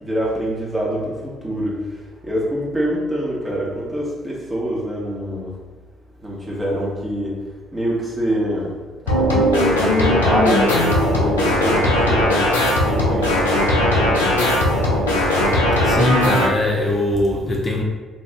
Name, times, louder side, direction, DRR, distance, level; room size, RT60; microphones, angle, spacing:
voice 1, 0.0-1.8 2.2-5.5 6.2-7.3 7.7-8.7 9.2-12.4 12.8-14.7, equal, 20° right, -5 dB, 1.2 m, -25 dB
sound 1, 9.1-16.5, left 1 dB, 85° left, 0.5 m, -18 dB
voice 2, 15.7-17.8, left 1 dB, 30° left, -2 dB, 0.6 m, -21 dB
2.8 x 2.6 x 3.4 m, 1.5 s
figure-of-eight pair, 45°, 0 cm